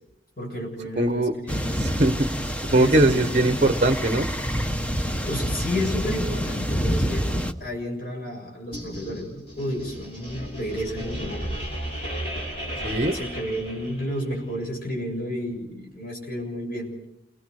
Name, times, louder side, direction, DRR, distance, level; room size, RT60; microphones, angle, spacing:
voice 1, 0.4-1.7 2.7-3.2 5.2-7.3 7.6-11.6 13.1-16.9, equal, 55° left, -1 dB, 7.1 m, -31 dB
voice 2, 1.0-1.3 1.7-2.3 2.6-4.3 12.8-13.2, right 1 dB, 40° right, 8 dB, 0.9 m, -21 dB
sound 1, 1.5-7.5, equal, 10° left, 0.8 m, -27 dB
sound 2, 8.7-14.4, equal, 35° left, 6.1 m, -34 dB
28.5 x 20.0 x 4.8 m, 0.84 s
head